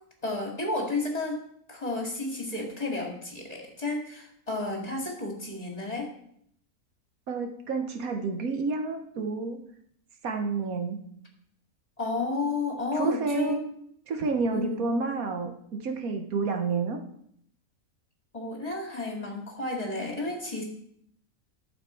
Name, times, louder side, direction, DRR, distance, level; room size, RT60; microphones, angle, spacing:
voice 1, 0.2-1.4 1.7-6.1 12.0-13.6 14.5-14.8 18.3-20.6, left 2 dB, 25° left, -1 dB, 2.5 m, -32 dB
voice 2, 7.3-9.6 10.2-11.0 12.9-13.6 14.1-17.0, right 4 dB, 75° right, 5 dB, 1.5 m, -29 dB
11.5 x 7.3 x 4.6 m, 0.69 s
omnidirectional pair, 1.5 m